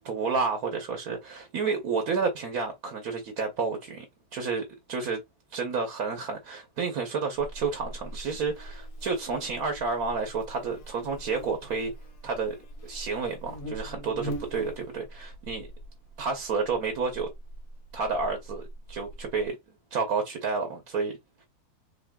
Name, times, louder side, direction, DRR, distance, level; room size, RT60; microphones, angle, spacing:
voice 1, 0.0-4.1 4.3-4.6 4.9-5.2 5.5-11.9 12.2-12.5 12.8-15.7 16.2-17.3 17.9-19.6 19.9-21.1, right 4 dB, 70° right, 1.4 m, -30 dB
Buzz, 7.4-19.5, right 1 dB, 50° left, 1.3 m, -43 dB
5.1 x 2.9 x 2.2 m
omnidirectional pair, 1.6 m